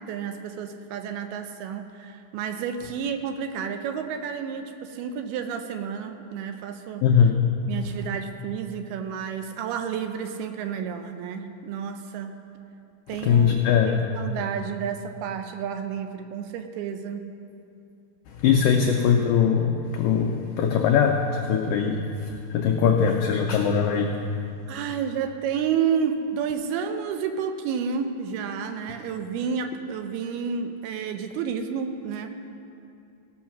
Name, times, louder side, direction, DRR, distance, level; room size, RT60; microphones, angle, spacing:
voice 1, 0.0-7.0 7.7-12.3 13.1-13.5 13.9-17.3 24.7-32.3, right 7 dB, 80° right, 7 dB, 2.4 m, -30 dB
voice 2, 7.0-7.3 13.2-13.9 18.3-24.1, left 7 dB, 85° left, 2 dB, 1.9 m, -21 dB
17.0 x 6.3 x 5.9 m, 2.6 s
omnidirectional pair, 4.7 m